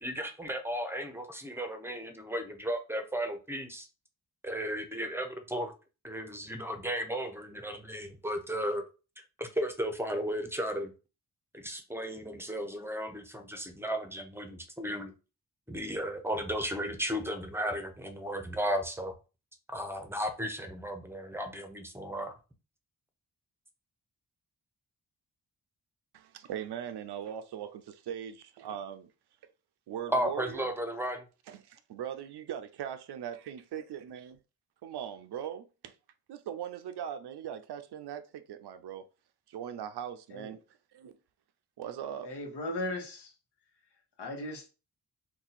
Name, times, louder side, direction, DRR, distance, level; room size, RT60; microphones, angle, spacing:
voice 1, 0.0-3.9 4.4-5.7 6.0-8.8 9.4-10.9 11.5-15.1 15.7-19.1 19.7-22.4 30.1-31.2, equal, 5° right, 0.6 m, -34 dB
voice 2, 26.1-29.1 29.9-30.7 31.5-34.4 34.8-35.9 36.3-39.1 39.5-40.6 40.9-41.2 41.8-42.3, right 9 dB, 80° right, 0.5 m, -40 dB
voice 3, 42.2-43.3 44.2-44.7, left 1 dB, 85° left, 1.0 m, -37 dB
2.7 x 2.3 x 4.1 m
cardioid pair, 80°, 39 cm